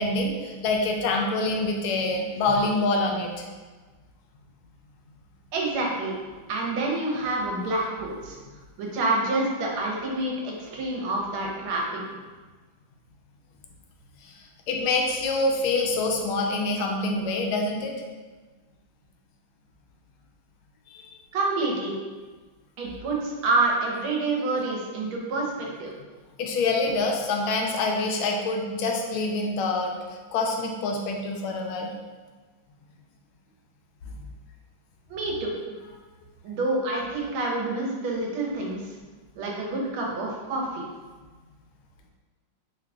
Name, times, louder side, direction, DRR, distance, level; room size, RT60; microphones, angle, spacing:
voice 1, 0.0-3.5 14.2-14.4 14.7-17.9 26.4-29.9 30.3-31.9, left 2 dB, 85° left, 1 dB, 1.4 m, -26 dB
voice 2, 5.5-6.1 6.5-8.3 8.8-12.0 21.3-22.0 22.8-25.9 35.1-35.5 36.4-38.8 39.3-40.8, right 2 dB, 80° right, -2 dB, 1.5 m, -27 dB
3.7 x 3.6 x 2.3 m, 1.4 s
omnidirectional pair, 2.3 m